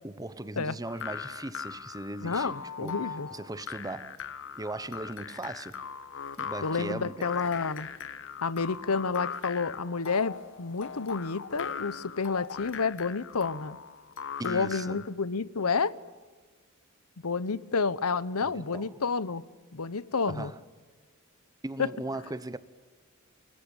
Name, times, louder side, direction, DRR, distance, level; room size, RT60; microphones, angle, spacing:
voice 1, 0.0-4.2 4.6-5.9 6.4-7.3 14.4-15.1 18.4-19.0 20.3-20.6 21.6-22.6, right 2 dB, 15° right, 1.0 m, -38 dB
sound 1, 0.8-15.1, left 7 dB, 60° left, 1.5 m, -40 dB
voice 2, 2.2-3.3 6.6-7.9 8.4-13.8 14.4-15.9 17.2-19.4 19.7-20.5 21.8-21.9, left 4 dB, 80° left, 0.9 m, -30 dB
29.0 x 21.0 x 9.0 m
head